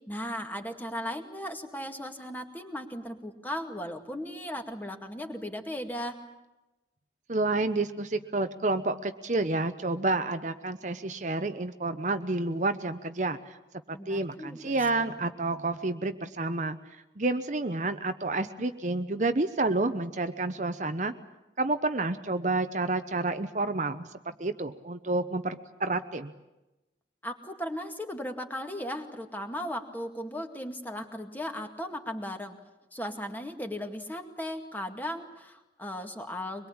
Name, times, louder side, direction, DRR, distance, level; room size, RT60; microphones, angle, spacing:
voice 1, 0.1-6.2 13.9-15.1 27.2-32.6 32.9-36.7, equal, 10° left, 5 dB, 2.2 m, -37 dB
voice 2, 7.3-13.6 13.9-16.8 17.2-21.1 21.6-26.3, right 2 dB, 45° right, 9 dB, 0.9 m, -29 dB
24.0 x 22.5 x 8.8 m, 0.99 s
head